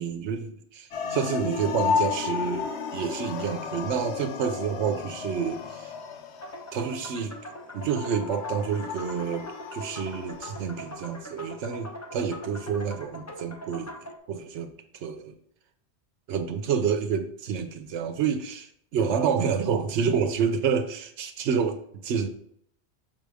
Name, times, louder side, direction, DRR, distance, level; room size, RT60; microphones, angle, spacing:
voice 1, 0.0-5.9 6.7-7.3 7.7-15.3 16.3-22.3, right 6 dB, 90° right, 7 dB, 1.0 m, -29 dB
sound 1, 0.9-11.0, left 6 dB, 75° left, 1.0 m, -33 dB
sound 2, 6.4-14.2, equal, 15° left, 0.8 m, -42 dB
6.3 x 5.7 x 3.4 m, 0.66 s
omnidirectional pair, 1.1 m